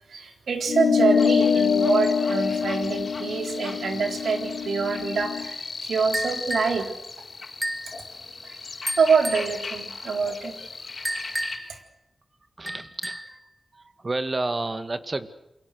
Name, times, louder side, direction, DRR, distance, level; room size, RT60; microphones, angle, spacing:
voice 1, 0.1-6.9 8.4-10.7 11.7-11.8, right 5 dB, 85° right, 5 dB, 3.9 m, -26 dB
sound 1, 0.7-5.5, left 6 dB, 90° left, 1.1 m, -24 dB
sound 2, 1.2-11.6, left 4 dB, 60° left, 4.7 m, -37 dB
sound 3, 6.1-6.8 7.6-7.9 8.9-9.5 11.0-11.8 12.7-13.4, right 1 dB, 10° right, 1.9 m, -31 dB
voice 2, 12.6-13.4 13.7-15.3, right 2 dB, 35° right, 11 dB, 2.1 m, -30 dB
28.5 x 23.0 x 6.6 m, 0.88 s
cardioid pair, 65°, 0 cm